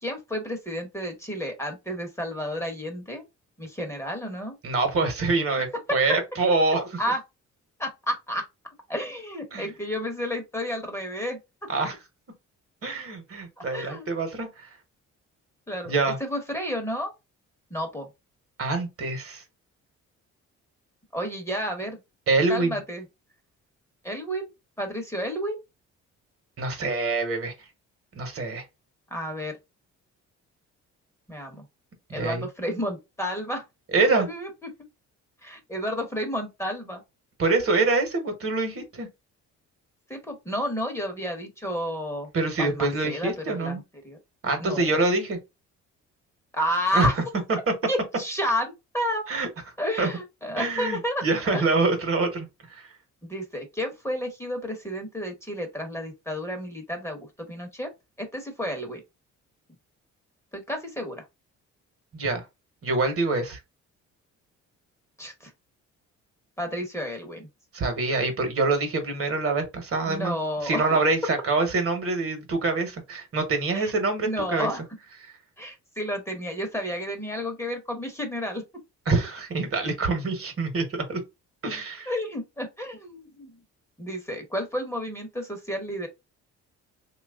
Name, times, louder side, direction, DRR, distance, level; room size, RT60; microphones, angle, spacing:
voice 1, 0.0-3.2 3.6-4.6 5.9-6.0 7.0-7.2 7.8-8.4 8.9-11.4 13.7-14.1 15.7-15.9 16.2-17.1 17.7-18.1 21.1-22.0 22.5-23.0 24.0-24.4 24.8-25.6 29.1-29.5 31.3-31.6 32.1-33.6 34.1-34.5 35.4-37.0 40.1-42.3 42.6-44.2 44.6-44.9 46.5-47.2 47.9-49.2 49.8-51.7 53.2-57.9 58.2-59.0 60.5-61.2 65.2-65.5 66.6-67.5 70.1-71.0 73.7-73.9 74.2-74.8 75.6-78.6 82.1-83.5 84.0-86.1, equal, 10° left, 0.9 m, -31 dB
voice 2, 4.6-7.0 9.5-9.7 11.7-12.0 12.8-14.7 15.9-16.2 18.6-19.4 22.3-22.8 26.6-27.5 28.1-28.6 32.1-32.5 33.9-34.3 37.4-39.1 42.3-43.8 44.4-45.4 46.9-47.1 49.3-49.5 50.0-50.1 50.6-52.8 62.1-62.4 62.8-63.6 67.7-70.4 70.6-74.7 75.2-75.3 79.1-81.2 81.6-82.1, right 3 dB, 50° right, 1.1 m, -25 dB
2.9 x 2.4 x 3.5 m
cardioid pair, 90°, 30 cm